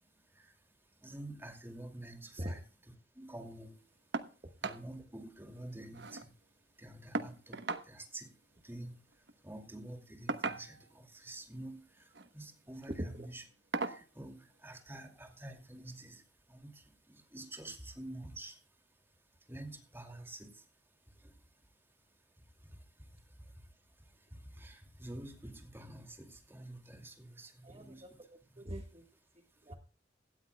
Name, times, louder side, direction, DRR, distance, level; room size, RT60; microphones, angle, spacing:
voice 1, 1.0-2.6 3.1-3.8 4.6-6.3 6.8-8.3 8.6-8.9 9.4-13.4 13.8-16.2 16.5-18.6 19.5-20.6 24.3-28.0 28.5-28.6, right 1 dB, 15° right, 2.4 m, -48 dB
sound 1, 4.1-4.3 4.6-4.8 5.2-5.3 5.6-6.3 7.1-7.9 9.1-9.3 10.3-11.0 12.0-12.3 12.8-12.9 13.7-14.1 15.3-15.4 15.9-16.0, right 3 dB, 70° right, 1.0 m, -38 dB
voice 2, 27.6-28.3 28.6-29.0 29.3-29.8, equal, 35° right, 1.4 m, -42 dB
17.5 x 13.0 x 2.2 m
head